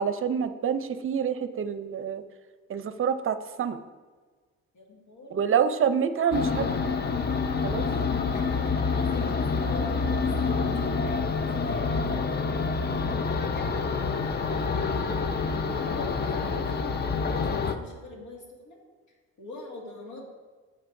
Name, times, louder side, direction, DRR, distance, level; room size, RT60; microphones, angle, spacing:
voice 1, 0.0-2.2 2.7-3.8 5.3-6.7 7.6-7.9, right 7 dB, 45° right, 11 dB, 0.6 m, -27 dB
voice 2, 4.7-5.5 8.3-10.2 10.4-13.1 13.5-15.2 15.7-16.9 17.2-18.8 19.4-20.3, left 2 dB, 85° left, -1 dB, 2.0 m, -43 dB
sound 1, 6.3-17.7, left 4 dB, 35° left, 0.6 m, -27 dB
15.0 x 5.2 x 2.6 m, 1.4 s
cardioid pair, 90°, 30 cm